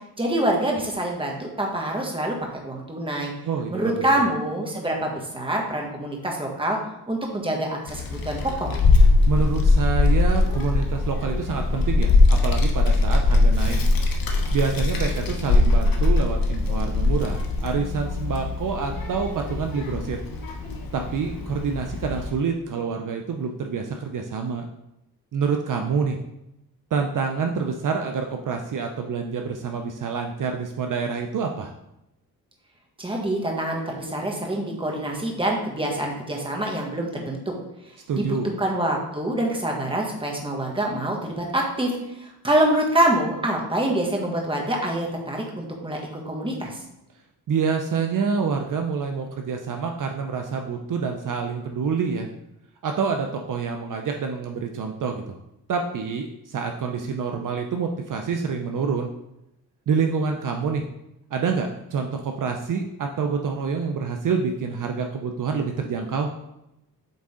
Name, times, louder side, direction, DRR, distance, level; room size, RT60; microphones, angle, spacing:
voice 1, 0.2-3.3 3.7-6.8 7.1-8.7 33.0-37.5 38.1-46.8, right 1 dB, 15° right, -1 dB, 1.6 m, -26 dB
voice 2, 3.4-3.9 9.3-13.8 14.5-20.2 20.9-24.7 25.3-26.2 26.9-31.7 38.1-38.5 47.5-52.3 52.8-55.4 55.7-59.1 59.9-60.8 61.3-66.3, right 5 dB, 55° right, 3 dB, 0.7 m, -27 dB
Child speech kid speaking, 7.9-22.3, left 2 dB, 65° left, 1.0 m, -21 dB
8.1 x 3.7 x 3.7 m, 0.88 s
cardioid pair, 90°, 37 cm